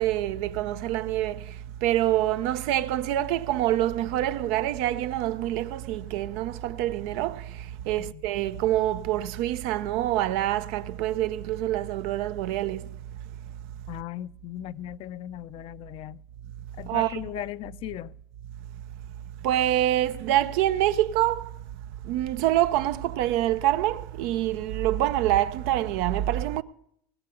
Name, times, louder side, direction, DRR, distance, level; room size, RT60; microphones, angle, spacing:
voice 1, 0.0-13.6 16.9-17.2 19.4-21.7 22.0-26.6, right 13 dB, 70° right, 0.7 m, -26 dB
voice 2, 13.9-16.2 16.8-18.1, left 14 dB, 50° left, 0.5 m, -37 dB
19.5 x 6.7 x 7.8 m
supercardioid pair, 100°, 12 cm